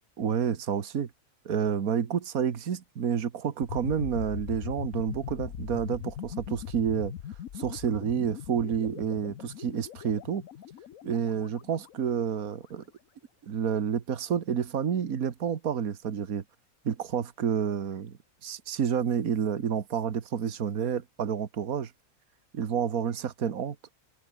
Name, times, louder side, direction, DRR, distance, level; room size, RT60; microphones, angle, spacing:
voice 1, 0.2-1.1 1.5-7.1 7.5-10.4 11.0-12.8 13.5-16.4 16.9-21.9 22.5-23.8, right 7 dB, 70° right, 1.8 m, -29 dB
sound 1, 3.6-12.5, left 10 dB, 65° left, 1.2 m, -41 dB
omnidirectional pair, 1.6 m